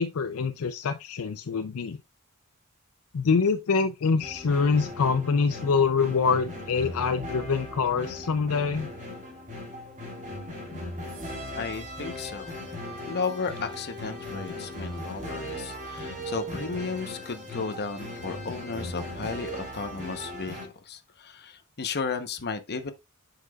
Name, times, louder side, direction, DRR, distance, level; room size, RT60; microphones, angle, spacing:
voice 1, 0.0-2.0 3.1-8.9 10.7-10.8, left 5 dB, 70° left, 0.5 m, -25 dB
sound 1, 4.2-20.7, left 1 dB, 35° right, 3.2 m, -38 dB
voice 2, 11.6-12.6 13.1-22.9, left 4 dB, 50° left, 0.9 m, -34 dB
7.9 x 5.9 x 2.4 m
head